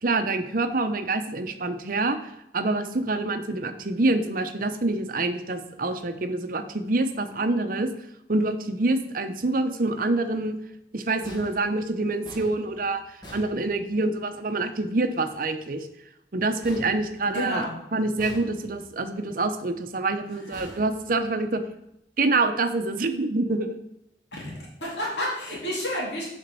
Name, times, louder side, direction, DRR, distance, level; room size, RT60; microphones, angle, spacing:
voice 1, 0.0-2.2 2.5-7.9 8.3-10.6 10.9-15.9 16.3-17.6 17.9-21.6 22.2-23.8, right 2 dB, 50° right, 8 dB, 0.8 m, -26 dB
sound 1, 11.2-14.3 16.6-17.7 18.2-19.0 20.5-21.6, equal, 25° left, 2.1 m, -46 dB
voice 2, 17.3-17.7 20.5-20.8 24.8-26.2, left 1 dB, 80° left, -4 dB, 2.6 m, -30 dB
7.2 x 5.2 x 6.8 m, 0.82 s
head